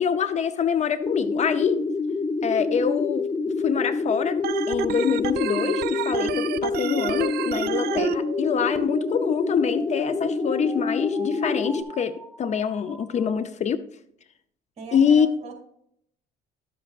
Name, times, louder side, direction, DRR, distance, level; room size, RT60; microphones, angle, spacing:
voice 1, 0.0-1.8 2.4-3.3 3.6-13.8 14.9-15.3, left 7 dB, 45° left, 12 dB, 0.6 m, -25 dB
sound 1, 1.0-11.8, left 4 dB, 20° left, 1.0 m, -27 dB
Organ, 4.4-8.1, right 13 dB, 70° right, 0.5 m, -30 dB
sound 2, 6.3-13.3, right 3 dB, 10° right, 1.9 m, -43 dB
voice 2, 14.8-15.5, right 5 dB, 40° right, 3 dB, 2.8 m, -40 dB
11.5 x 7.7 x 2.4 m, 0.71 s
cardioid pair, 110°, 17 cm